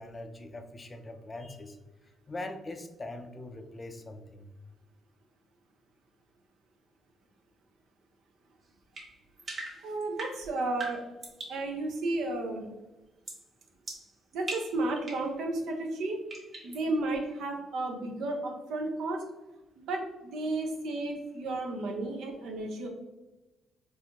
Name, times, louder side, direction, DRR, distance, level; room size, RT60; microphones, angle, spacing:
voice 1, 0.0-1.8 2.3-4.5 16.6-16.9, left 2 dB, 30° left, 6 dB, 0.4 m, -42 dB
sound 1, 8.9-11.6 13.3-13.5 13.9-15.3 16.3-16.8, right 2 dB, 45° right, 1.3 m, -41 dB
voice 2, 9.5-11.0 11.5-12.7 14.3-16.2 16.6-19.2 19.8-22.9, right 2 dB, 80° right, 2 dB, 0.7 m, -33 dB
4.0 x 2.5 x 2.8 m, 1.0 s
cardioid pair, 90°, 0 cm